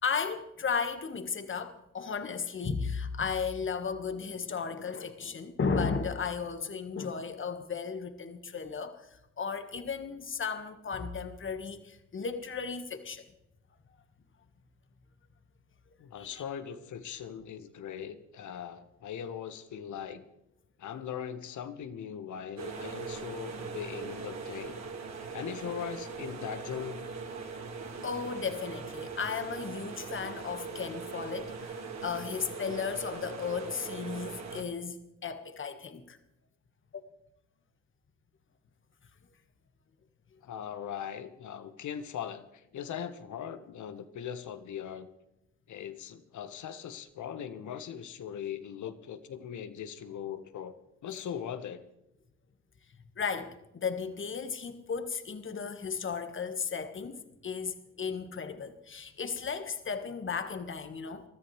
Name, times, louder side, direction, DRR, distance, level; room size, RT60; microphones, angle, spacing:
voice 1, 0.0-13.3 16.2-16.4 28.0-35.0 35.2-36.2 36.9-37.0 53.2-61.2, left 5 dB, 35° left, 1.5 m, -35 dB
voice 2, 16.0-20.2 20.8-24.8 25.3-27.1 40.4-45.1 45.7-50.7 51.0-51.8, left 8 dB, 60° left, 1.3 m, -40 dB
sound 1, 22.6-34.6, right 5 dB, 50° right, 2.8 m, -40 dB
22.5 x 13.5 x 3.3 m
hypercardioid pair, 60°, 35 cm